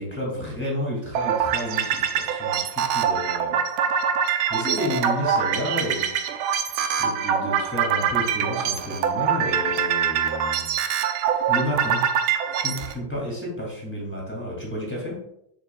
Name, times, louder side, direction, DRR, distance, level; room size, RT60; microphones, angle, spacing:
voice 1, 0.0-4.1 4.5-6.2 7.0-10.7 11.5-15.2, left 1 dB, 5° left, -4 dB, 2.1 m, -31 dB
sound 1, 1.2-12.9, right 8 dB, 80° right, 1.5 m, -24 dB
7.2 x 6.3 x 2.3 m, 0.77 s
omnidirectional pair, 2.3 m